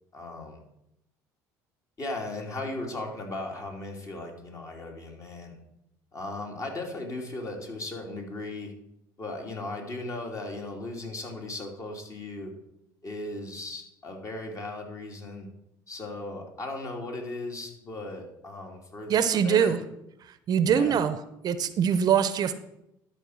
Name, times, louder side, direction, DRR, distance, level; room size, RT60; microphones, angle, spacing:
voice 1, 0.1-0.6 2.0-5.6 6.1-8.7 9.2-12.5 13.0-15.5 15.9-19.8 20.6-20.9, left 2 dB, 35° left, 1 dB, 2.5 m, -37 dB
voice 2, 19.1-19.8 20.2-21.2 21.4-22.5, right 8 dB, 50° right, 12 dB, 0.7 m, -23 dB
12.0 x 4.5 x 6.3 m, 0.84 s
supercardioid pair, 85°, 9 cm